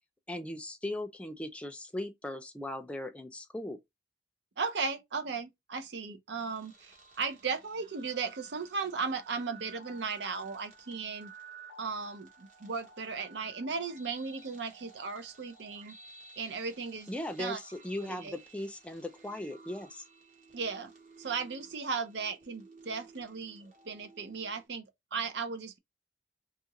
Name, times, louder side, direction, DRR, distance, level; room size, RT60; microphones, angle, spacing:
voice 1, 0.3-3.8 17.1-20.0, left 1 dB, 5° left, 0.4 m, -38 dB
voice 2, 4.6-11.3 11.8-16.0 16.4-17.6 18.0-18.4 20.5-20.9 21.2-24.9 25.1-25.8, right 5 dB, 80° right, 0.6 m, -36 dB
sound 1, 6.4-24.7, right 4 dB, 45° right, 1.0 m, -55 dB
2.8 x 2.4 x 2.8 m
head